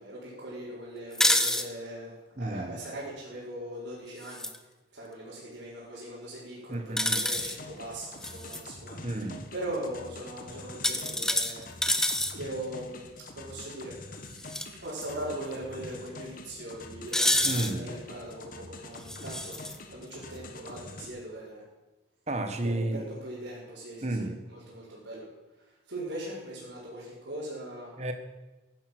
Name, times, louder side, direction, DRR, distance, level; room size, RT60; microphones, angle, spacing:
voice 1, 0.0-4.5 4.9-11.7 12.3-13.1 13.3-13.9 14.8-21.6 22.6-25.3 25.9-27.9, right 1 dB, 80° right, -8 dB, 4.9 m, -40 dB
sound 1, 1.1-1.6 4.2-4.6 7.0-7.6 8.2-8.6 10.8-12.3 14.4-14.6 15.0-15.1 17.1-17.7 19.1-19.8, left 1 dB, 5° left, 0.8 m, -27 dB
voice 2, 2.4-2.8 6.7-7.2 9.0-9.4 17.4-17.9 22.3-23.0 24.0-24.3 28.0-28.1, right 2 dB, 35° right, 7 dB, 1.5 m, -31 dB
sound 2, 7.4-21.1, left 2 dB, 45° left, 1.5 m, -46 dB
16.0 x 11.0 x 6.2 m, 1.1 s
head